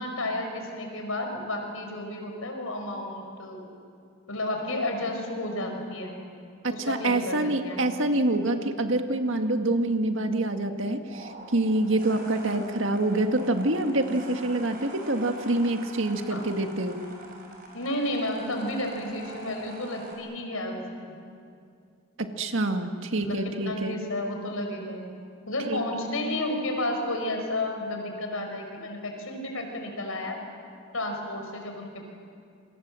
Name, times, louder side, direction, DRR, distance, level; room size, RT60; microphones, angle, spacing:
voice 1, 0.0-3.7 4.3-6.2 6.7-8.0 16.3-16.5 17.7-21.1 23.2-25.2 25.5-30.4 30.9-32.0, left 1 dB, 80° left, 3 dB, 5.2 m, -32 dB
voice 2, 6.6-17.0 22.2-24.0 25.7-25.8, right 2 dB, 60° right, 5 dB, 1.9 m, -26 dB
sound 1, 11.1-20.1, right 2 dB, 45° right, 6.1 m, -44 dB
28.5 x 25.0 x 7.7 m, 2.3 s
head